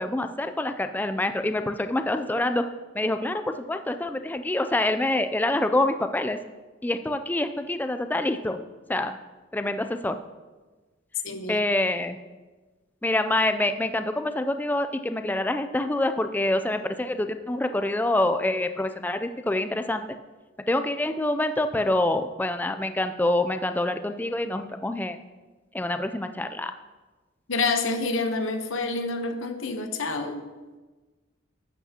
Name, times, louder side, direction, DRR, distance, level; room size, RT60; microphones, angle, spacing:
voice 1, 0.0-2.6 2.9-6.4 6.8-8.6 8.9-9.1 9.5-10.2 11.5-12.2 13.0-20.0 20.7-25.2 25.7-26.7, left 1 dB, 10° left, 9 dB, 0.3 m, -26 dB
voice 2, 11.2-11.6 27.5-30.4, left 3 dB, 85° left, 7 dB, 0.9 m, -28 dB
11.5 x 8.3 x 2.8 m, 1.3 s
head